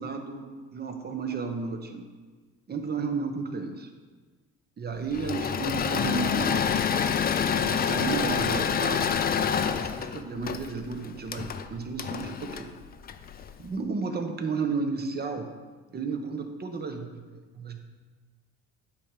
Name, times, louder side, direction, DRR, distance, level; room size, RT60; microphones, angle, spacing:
voice 1, 0.0-2.1 2.7-3.9 4.8-6.7 7.6-9.1 9.4-12.7 13.6-15.5 15.9-17.8, right 4 dB, 30° right, 5 dB, 0.9 m, -33 dB
Engine / Mechanisms, 5.1-13.5, left 7 dB, 30° left, 0.4 m, -27 dB
8.3 x 3.4 x 5.3 m, 1.4 s
supercardioid pair, 80°, 32 cm